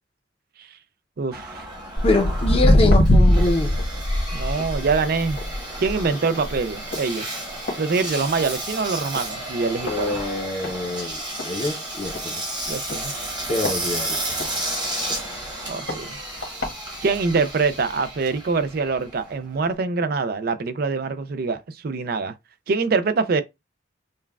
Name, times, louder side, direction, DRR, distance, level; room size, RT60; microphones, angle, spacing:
voice 1, 1.2-1.7 4.3-5.4 5.8-7.4 7.8-10.2 12.7-13.1 15.7-16.2 17.0-22.3 22.7-23.4, right 4 dB, 50° right, 0.4 m, -24 dB
Engine, 1.3-19.7, right 1 dB, 25° right, 1.2 m, -32 dB
Walk footsteps, 2.0-8.6 8.9-9.3 9.9-10.0 10.6-10.7 11.1-11.2 11.4-11.5 12.1-12.2 12.9-14.5 15.1-15.2 15.9-16.0 16.4-16.7 17.4-17.5, left 1 dB, 75° left, 1.2 m, -21 dB
voice 2, 2.0-3.7 9.8-11.2 11.4-12.4 13.5-14.4, left 2 dB, 30° left, 0.6 m, -24 dB
5.4 x 2.2 x 2.3 m
head